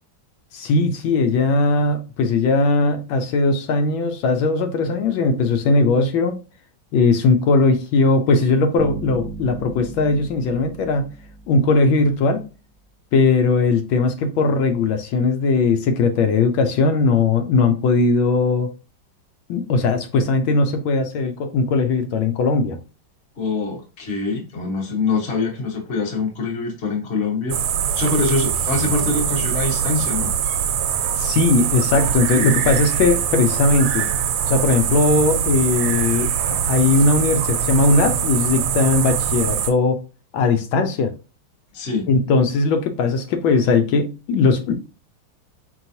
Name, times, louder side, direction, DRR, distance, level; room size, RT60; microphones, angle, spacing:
voice 1, 0.5-6.4 6.9-11.1 11.5-12.4 13.1-18.7 19.5-22.8 31.2-34.0 34.5-40.0 40.3-41.1 42.1-44.7, left 3 dB, 80° left, 1.5 m, -19 dB
sound 1, 8.8-12.2, right 4 dB, 5° right, 0.9 m, -36 dB
voice 2, 23.4-27.6 27.9-30.3 41.7-42.1, left 3 dB, 40° left, 1.2 m, -24 dB
sound 2, 27.5-39.7, right 8 dB, 80° right, 1.3 m, -23 dB
4.7 x 3.4 x 2.7 m
omnidirectional pair, 2.2 m